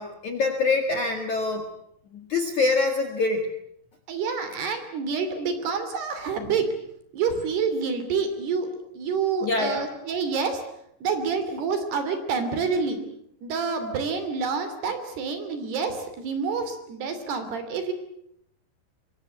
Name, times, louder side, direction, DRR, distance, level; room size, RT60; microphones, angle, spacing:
voice 1, 0.0-1.7 2.1-3.4 9.4-9.9, left 3 dB, 55° left, 5 dB, 2.3 m, -25 dB
voice 2, 4.1-6.7 7.1-10.6 11.0-13.0 13.4-17.9, right 5 dB, 55° right, 9 dB, 4.5 m, -28 dB
25.0 x 23.5 x 8.2 m, 0.74 s
omnidirectional pair, 5.9 m